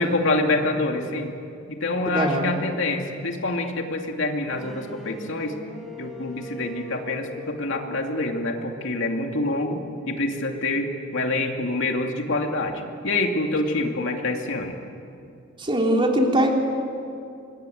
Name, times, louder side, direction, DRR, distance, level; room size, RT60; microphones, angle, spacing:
voice 1, 0.0-1.3 1.7-5.5 6.0-9.8 10.1-14.7, left 2 dB, 65° left, 3 dB, 2.6 m, -26 dB
voice 2, 2.0-2.5 15.6-16.5, right 1 dB, 25° right, 1 dB, 3.4 m, -21 dB
sound 1, 4.5-10.4, left 1 dB, ahead, 3.1 m, -42 dB
26.0 x 21.5 x 9.3 m, 2.6 s
head